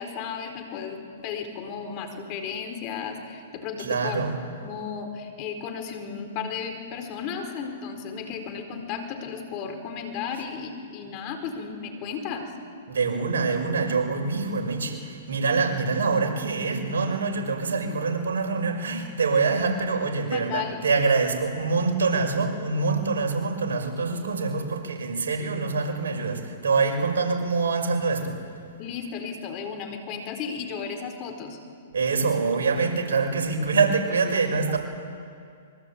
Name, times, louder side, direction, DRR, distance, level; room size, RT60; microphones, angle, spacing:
voice 1, 0.0-4.2 4.6-12.5 20.3-20.9 28.8-31.6, left 6 dB, 40° left, 6 dB, 4.4 m, -34 dB
voice 2, 3.8-4.4 12.9-28.4 31.9-34.8, right 4 dB, 75° right, 3 dB, 5.9 m, -25 dB
26.0 x 23.5 x 8.8 m, 2.4 s
hypercardioid pair, 130°, 0 cm